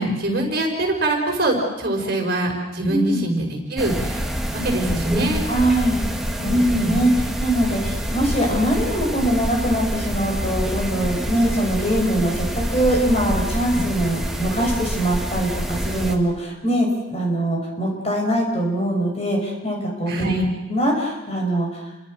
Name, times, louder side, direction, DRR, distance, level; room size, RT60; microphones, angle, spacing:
voice 1, 0.0-4.2 4.6-5.4 6.4-7.0 20.1-20.5, right 1 dB, 50° right, 2 dB, 5.5 m, -23 dB
voice 2, 2.9-3.2 5.5-6.0 6.3-7.1 7.4-20.3 20.7-21.9, right 1 dB, 30° left, 1 dB, 5.8 m, -22 dB
sound 1, 3.8-16.2, equal, ahead, 2.1 m, -27 dB
29.5 x 24.0 x 6.5 m, 1.0 s
head